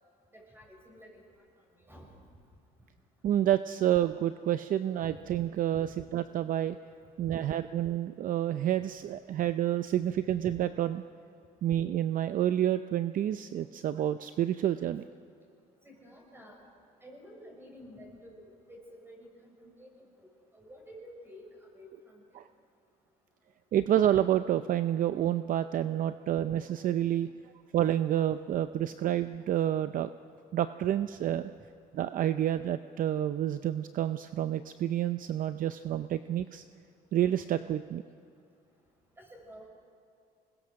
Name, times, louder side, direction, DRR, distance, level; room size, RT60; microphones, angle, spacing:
voice 1, 0.3-1.2 1.9-2.1 5.1-5.2 5.8-5.9 7.3-7.4 15.8-16.6 17.0-22.2 39.2-39.7, equal, 15° right, 0 dB, 6.6 m, -51 dB
voice 2, 3.2-6.8 7.2-11.0 11.6-15.0 22.3-22.4 23.7-27.3 27.7-30.1 30.5-31.5 31.9-36.6 37.1-38.0, right 11 dB, 55° right, 11 dB, 0.6 m, -29 dB
26.5 x 21.0 x 6.4 m, 2.4 s
cardioid pair, 110°, 17 cm